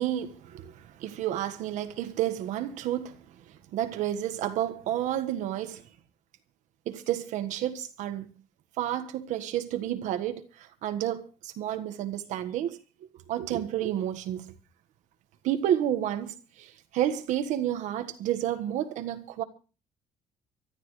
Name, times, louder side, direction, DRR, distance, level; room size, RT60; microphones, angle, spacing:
voice 1, 0.0-5.8 6.8-8.3 8.8-12.8 13.3-14.5 15.4-19.4, right 11 dB, 75° right, 1.5 m, -31 dB
24.5 x 13.0 x 3.2 m
cardioid pair, 150°, 13 cm